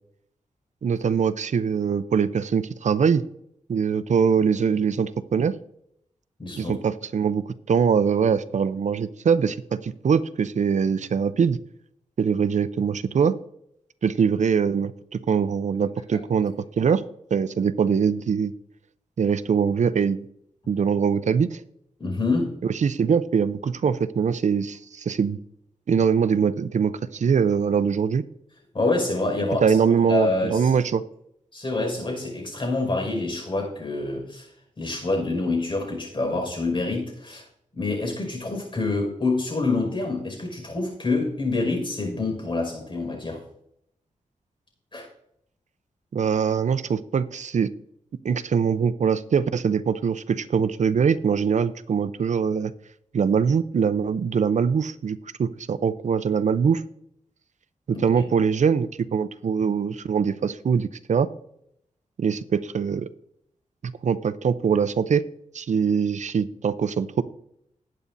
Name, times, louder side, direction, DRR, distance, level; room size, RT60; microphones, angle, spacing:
voice 1, 0.8-3.2 3.7-5.5 6.6-11.6 12.2-13.3 14.0-17.0 17.3-18.5 19.2-20.3 20.7-21.6 22.8-25.4 25.9-28.2 29.6-31.0 46.1-47.7 48.2-52.7 53.1-56.8 57.9-61.3 62.2-63.1 64.0-65.2 65.5-67.2, right 6 dB, 65° right, 14 dB, 0.6 m, -23 dB
voice 2, 6.4-6.8 22.0-22.5 28.7-29.8 30.1-30.7 31.5-34.5 34.8-37.4 37.7-43.4 44.9-45.1 57.9-58.1, left 3 dB, 40° left, 1 dB, 5.5 m, -26 dB
19.5 x 8.4 x 2.7 m, 0.75 s
cardioid pair, 70°, 13 cm